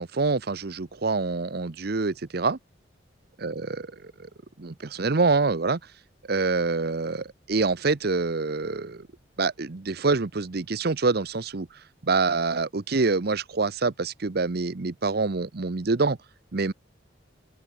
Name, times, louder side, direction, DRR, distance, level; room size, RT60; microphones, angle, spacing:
voice 1, 0.0-2.6 3.4-4.3 4.6-5.8 6.3-9.1 9.4-11.7 12.0-16.2 16.5-16.7, right 3 dB, 55° right, 0.8 m, -26 dB
open air
head